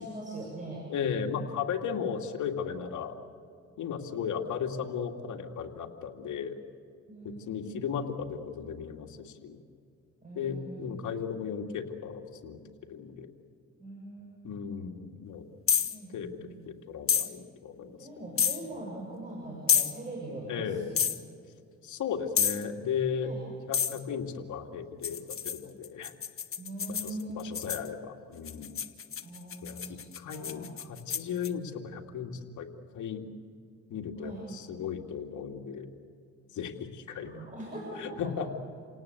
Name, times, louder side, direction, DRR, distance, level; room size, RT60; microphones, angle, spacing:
voice 1, 0.0-0.9 7.1-7.7 10.2-10.8 13.8-14.7 15.9-16.6 18.0-21.0 23.2-23.4 26.6-27.6 29.2-30.0 30.3-30.7 34.2-34.4 37.2-38.3, right 1 dB, 25° right, -1 dB, 7.0 m, -41 dB
voice 2, 0.9-3.2 3.8-6.6 7.2-9.6 10.3-12.6 12.9-13.3 14.4-15.5 16.1-16.4 16.7-18.0 20.5-20.9 21.8-23.3 23.7-26.1 26.9-28.8 29.6-32.7 32.9-33.2 33.9-35.9 36.5-37.4 38.0-38.5, left 7 dB, 75° left, 3 dB, 2.5 m, -36 dB
sound 1, 15.7-16.0 17.1-17.3 18.4-18.6 19.7-19.9 21.0-21.2 22.4-22.6 23.7-24.0 25.0-27.9 28.5-31.5, left 8 dB, 45° left, 1.5 m, -28 dB
29.0 x 18.5 x 8.3 m, 2.4 s
cardioid pair, 90°, 30 cm